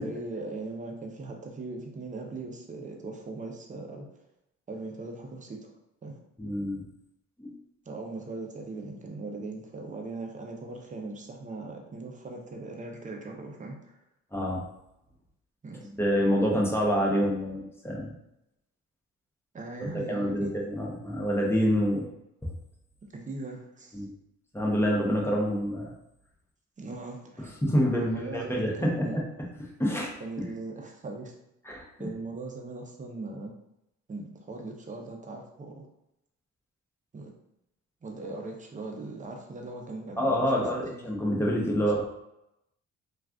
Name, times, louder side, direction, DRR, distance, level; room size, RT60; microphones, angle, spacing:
voice 1, 0.0-4.2 4.7-5.7 6.0-6.2 7.9-14.0 15.6-15.9 19.5-20.6 23.1-24.0 26.8-27.6 28.0-29.2 30.2-31.3 32.0-33.5 34.1-35.9 37.1-37.3 38.0-41.1 41.8-42.0, right 3 dB, 25° right, 2 dB, 0.7 m, -39 dB
voice 2, 6.4-6.8 7.4-7.5 14.3-14.6 16.0-18.1 19.8-22.1 23.9-24.1 24.5-25.9 27.6-29.2 29.8-30.1 31.7-31.9 40.2-42.0, equal, 10° left, -3 dB, 0.8 m, -27 dB
2.4 x 2.4 x 3.4 m, 0.85 s
cardioid pair, 90°, 30 cm